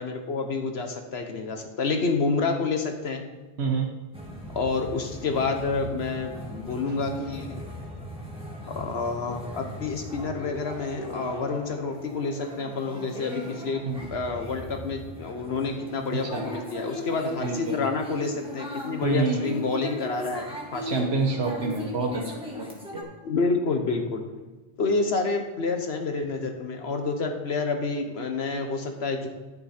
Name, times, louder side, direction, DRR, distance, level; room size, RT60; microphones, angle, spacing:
voice 1, 0.0-3.2 4.5-7.6 8.7-13.8 14.1-20.9 23.2-24.2 24.8-29.3, left 4 dB, 75° left, 4 dB, 1.3 m, -28 dB
sound 1, 4.1-23.0, left 2 dB, 5° right, 1.9 m, -38 dB
voice 2, 17.4-17.8 19.0-19.6 20.8-23.1, right 3 dB, 75° right, 2 dB, 1.3 m, -28 dB
11.5 x 6.7 x 4.3 m, 1.2 s
omnidirectional pair, 1.1 m